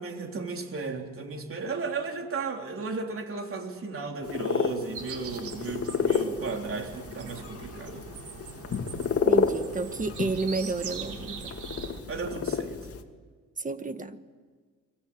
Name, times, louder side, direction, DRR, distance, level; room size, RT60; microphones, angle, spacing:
voice 1, 0.0-8.1 12.1-12.8, right 4 dB, 45° right, 3 dB, 3.6 m, -35 dB
sound 1, 4.2-13.0, left 5 dB, 50° left, 2.3 m, -31 dB
sound 2, 4.9-12.0, right 6 dB, 75° right, 3.6 m, -42 dB
voice 2, 9.2-11.5 13.6-14.2, right 3 dB, 25° right, 10 dB, 1.7 m, -31 dB
30.0 x 22.5 x 8.8 m, 1.5 s
cardioid pair, 90°, 30 cm